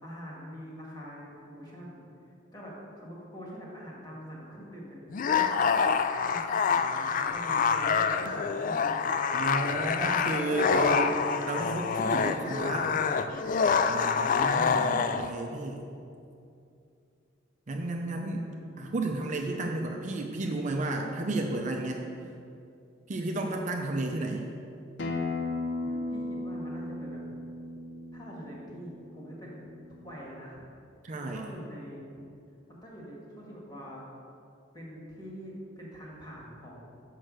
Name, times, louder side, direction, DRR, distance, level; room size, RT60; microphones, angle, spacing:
voice 1, 0.0-2.0 2.5-9.1 10.0-11.4 13.9-14.7 18.3-19.2 25.8-27.2 28.1-29.7 30.0-30.6 31.2-32.0 32.8-34.0 34.7-36.9, equal, 20° left, -4 dB, 1.8 m, -44 dB
sound 1, 5.1-15.3, left 6 dB, 45° left, 0.3 m, -26 dB
voice 2, 9.3-11.1 11.5-12.9 13.9-15.9 17.7-18.4 18.8-22.1 23.1-24.5 31.0-31.5, right 2 dB, 40° right, 2 dB, 0.5 m, -32 dB
Acoustic guitar, 25.0-30.2, left 2 dB, 65° left, 0.7 m, -36 dB
6.3 x 5.5 x 6.3 m, 2.5 s
head